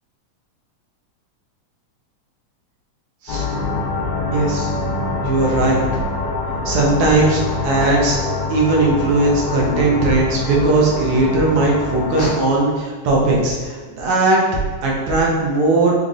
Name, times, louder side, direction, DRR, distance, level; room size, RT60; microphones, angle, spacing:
sound 1, 3.3-12.3, left 3 dB, 80° left, 1.8 m, -24 dB
voice 1, 4.3-4.7 5.2-5.8 6.7-8.2 8.5-14.4 14.8-15.9, right 2 dB, 75° right, -3 dB, 1.7 m, -18 dB
5.4 x 2.4 x 2.4 m, 1.4 s
omnidirectional pair, 3.3 m